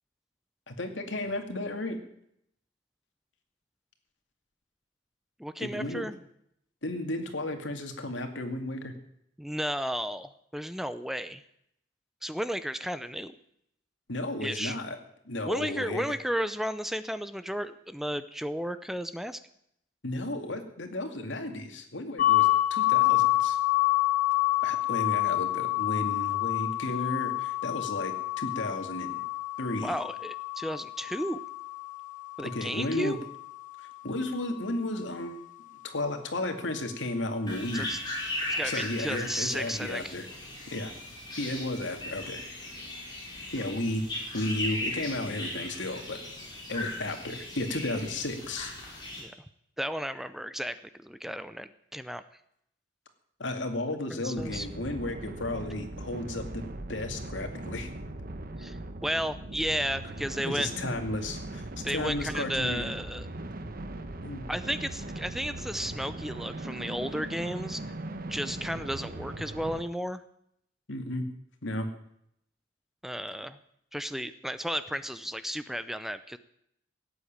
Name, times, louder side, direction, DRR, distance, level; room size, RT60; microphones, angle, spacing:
voice 1, 0.7-2.0 5.6-6.1 6.8-8.9 14.1-15.0 15.2-16.0 20.0-23.6 24.6-29.1 29.6-29.9 32.4-33.2 33.8-35.4 35.8-37.9 38.6-40.3 40.7-40.9 41.3-42.4 43.5-44.0 44.3-46.2 46.7-48.7 53.4-57.9 60.4-61.6 61.9-62.9 64.2-64.5 70.9-71.3 71.6-71.9, left 1 dB, 80° left, 5 dB, 2.3 m, -33 dB
voice 2, 5.4-6.1 9.4-11.4 12.2-13.4 14.4-14.8 15.5-19.4 29.8-31.4 32.4-33.2 37.7-38.0 38.5-40.1 49.2-49.3 49.8-52.2 54.1-54.7 58.6-60.7 61.8-63.3 64.5-68.0 68.3-70.2 73.0-73.6 73.9-76.4, equal, ahead, 12 dB, 0.5 m, -33 dB
sound 1, 22.2-33.9, left 18 dB, 45° left, 1.1 m, -28 dB
sound 2, 37.5-49.2, left 1 dB, 25° left, 7.1 m, -37 dB
sound 3, 54.4-69.8, right 1 dB, 50° right, 1.2 m, -39 dB
17.5 x 8.4 x 8.8 m, 0.74 s
head